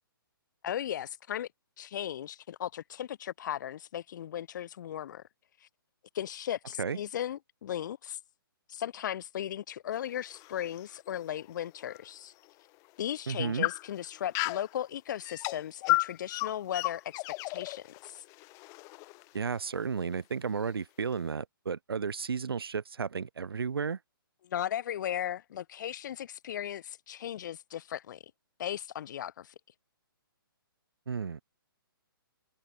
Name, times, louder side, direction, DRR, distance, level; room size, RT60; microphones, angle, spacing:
voice 1, 0.6-1.5 1.8-5.2 6.1-8.2 8.7-12.3 13.0-18.2 24.4-28.2 28.6-29.5, left 11 dB, 50° left, 1.1 m, -36 dB
sound 1, 9.9-12.0 12.5-12.6 13.2-14.7 15.3-19.6, left 26 dB, 25° left, 0.9 m, -34 dB
voice 2, 13.3-13.7 19.3-24.0 31.1-31.4, right 6 dB, 80° right, 1.6 m, -33 dB
hypercardioid pair, 140°, 12 cm